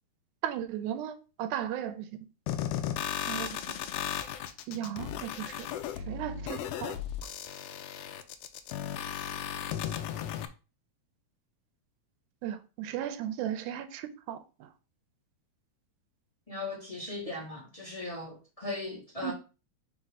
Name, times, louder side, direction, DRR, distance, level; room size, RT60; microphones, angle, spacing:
voice 1, 0.4-2.1 3.3-3.8 4.7-5.7 6.1-7.0 12.4-14.7 19.2-19.3, right 10 dB, 85° right, 2.2 m, -36 dB
sound 1, 2.5-10.5, left 10 dB, 85° left, 1.5 m, -35 dB
voice 2, 16.5-19.3, left 2 dB, 25° left, 0.8 m, -38 dB
4.8 x 4.0 x 4.8 m
omnidirectional pair, 3.5 m